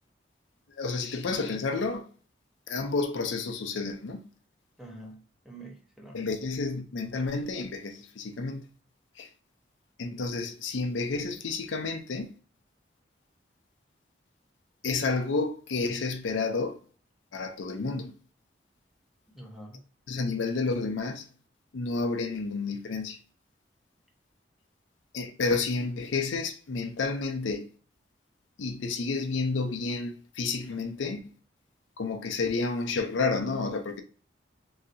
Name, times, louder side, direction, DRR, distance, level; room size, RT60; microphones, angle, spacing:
voice 1, 0.8-2.1 2.7-4.3 6.1-8.7 9.2-9.3 10.0-12.3 14.8-16.8 17.3-18.1 20.1-21.3 21.7-23.2 25.1-27.7 28.6-31.3 32.0-34.0, left 4 dB, 90° left, 0.5 m, -30 dB
voice 2, 4.8-6.3 19.3-19.8, right 1 dB, ahead, 0.7 m, -46 dB
3.2 x 2.7 x 2.6 m
head